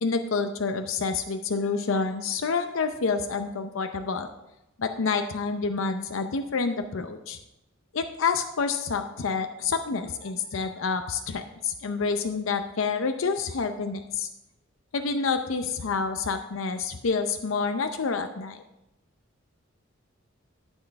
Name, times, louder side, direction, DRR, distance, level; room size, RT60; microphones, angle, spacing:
voice 1, 0.0-4.3 4.8-7.4 7.9-14.3 14.9-18.6, left 4 dB, 75° left, 7 dB, 0.6 m, -28 dB
12.0 x 4.4 x 5.7 m, 0.89 s
head